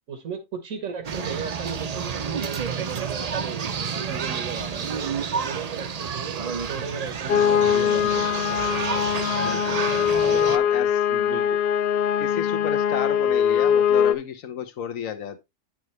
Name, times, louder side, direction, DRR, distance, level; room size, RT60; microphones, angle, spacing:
voice 1, 0.1-3.6 4.0-8.6 10.2-10.5 11.1-11.6, right 6 dB, 90° right, 1.8 m, -36 dB
sound 1, 1.0-10.6, right 6 dB, 45° right, 0.5 m, -30 dB
sound 2, 7.3-14.1, left 8 dB, 60° left, 0.7 m, -22 dB
voice 2, 9.4-9.8 10.4-11.0 12.2-15.4, left 8 dB, 80° left, 1.4 m, -32 dB
9.4 x 6.1 x 3.2 m
omnidirectional pair, 1.4 m